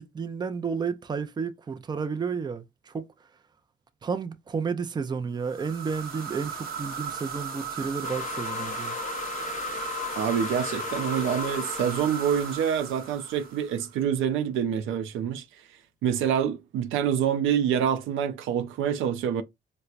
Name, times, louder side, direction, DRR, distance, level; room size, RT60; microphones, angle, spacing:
voice 1, 0.0-3.0 4.0-9.0, right 5 dB, 20° right, 0.4 m, -31 dB
sound 1, 5.4-13.9, right 6 dB, 50° right, 0.8 m, -37 dB
sound 2, 8.0-13.3, left 8 dB, 40° left, 0.4 m, -36 dB
voice 2, 10.2-15.4 16.0-19.4, right 8 dB, 85° right, 0.5 m, -26 dB
4.3 x 2.1 x 2.4 m
cardioid pair, 90°, 20 cm